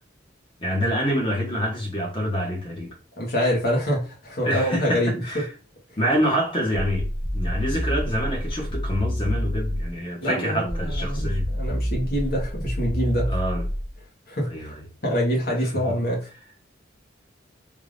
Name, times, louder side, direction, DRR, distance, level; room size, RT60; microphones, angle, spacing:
voice 1, 0.6-3.0 4.4-5.5 6.0-11.5 13.3-13.6 14.4-14.8 15.9-16.0, equal, 25° left, 1.3 m, -26 dB
voice 2, 3.2-5.2 10.2-13.3 14.3-14.7 15.0-16.2, equal, 50° left, 1.6 m, -25 dB
sound 1, 6.7-10.0 10.7-14.0, equal, 10° left, 0.7 m, -28 dB
3.6 x 2.6 x 3.4 m
head